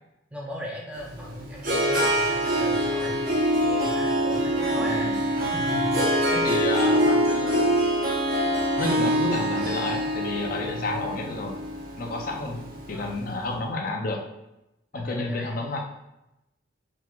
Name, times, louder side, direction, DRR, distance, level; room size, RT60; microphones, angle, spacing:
voice 1, 0.3-3.2 3.6-6.4 10.7-11.0 12.9-13.2 14.9-15.8, equal, 5° right, -3 dB, 0.7 m, -37 dB
Harp, 1.0-13.1, equal, 50° right, 0.9 m, -24 dB
voice 2, 4.8-5.1 6.3-7.7 8.8-11.6 12.0-14.2 14.9-15.8, left 2 dB, 45° left, 1 dB, 0.6 m, -30 dB
4.6 x 3.7 x 2.4 m, 0.91 s
head